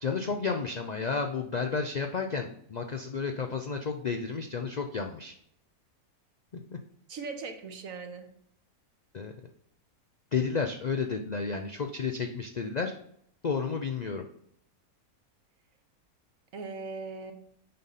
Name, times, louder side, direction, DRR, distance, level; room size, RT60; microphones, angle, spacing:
voice 1, 0.0-5.3 6.7-6.8 9.1-9.3 10.3-12.9 13.4-14.2, left 5 dB, 75° left, 4 dB, 0.4 m, -31 dB
voice 2, 7.1-8.3 16.5-17.3, right 4 dB, 65° right, 6 dB, 1.3 m, -39 dB
7.7 x 5.4 x 4.1 m, 0.69 s
omnidirectional pair, 1.6 m